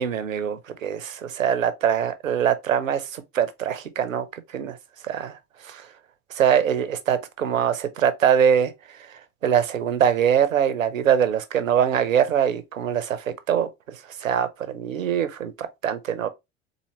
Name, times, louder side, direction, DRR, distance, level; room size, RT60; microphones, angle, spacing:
voice 1, 0.0-4.8 5.0-5.4 5.6-5.9 6.3-8.7 9.1-16.3, right 8 dB, 85° right, 0.7 m, -23 dB
4.1 x 2.7 x 2.8 m
hypercardioid pair, 75°, 39 cm